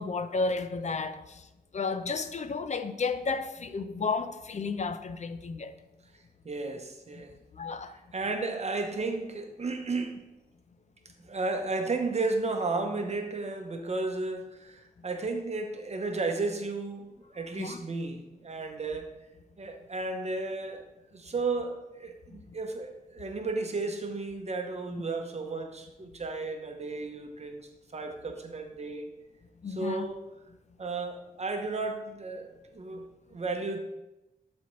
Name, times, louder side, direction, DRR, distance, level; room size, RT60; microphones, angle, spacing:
voice 1, 0.0-1.4 1.7-5.7 7.5-8.0 17.6-17.8 24.9-25.0 29.6-30.1 32.9-33.0, left 4 dB, 50° left, 0.5 m, -32 dB
voice 2, 6.4-7.4 7.9-10.2 11.2-19.1 19.6-20.9 21.1-27.6 27.9-29.1 29.7-30.3 30.8-33.8, right 3 dB, 45° right, 0.8 m, -33 dB
12.0 x 4.3 x 3.1 m
wide cardioid pair, 85°, 15 cm